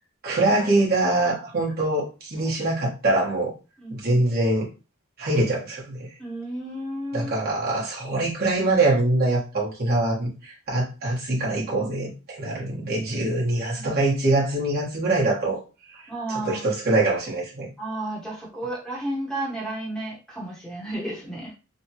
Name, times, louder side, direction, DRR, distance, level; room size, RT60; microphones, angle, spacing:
voice 1, 0.2-3.5 3.9-4.7 5.2-6.1 7.1-15.6 15.9-17.7, right 2 dB, 50° right, 1.3 m, -24 dB
voice 2, 3.8-4.2 6.2-7.3 13.7-13.9 16.1-16.8 17.8-21.5, right 1 dB, 5° left, 1.0 m, -32 dB
3.3 x 2.2 x 2.8 m
head